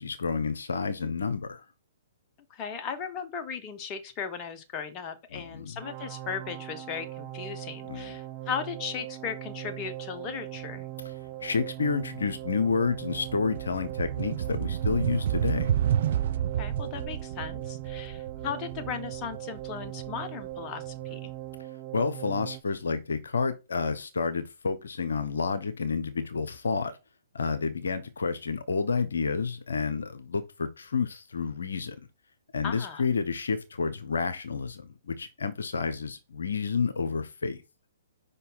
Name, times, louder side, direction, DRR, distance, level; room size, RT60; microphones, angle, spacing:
voice 1, 0.0-1.6 5.3-5.8 7.9-8.2 11.4-15.7 21.9-26.9 27.3-32.0 32.5-37.6, left 5 dB, 70° left, 0.9 m, -30 dB
voice 2, 2.5-10.9 16.6-21.3 32.6-33.0, left 7 dB, 30° left, 1.1 m, -37 dB
sound 1, 5.8-22.6, right 15 dB, 20° right, 1.3 m, -40 dB
sound 2, 11.4-11.7 12.0-20.9, right 10 dB, 55° right, 0.3 m, -31 dB
5.3 x 4.2 x 5.6 m
figure-of-eight pair, 120°, 0 cm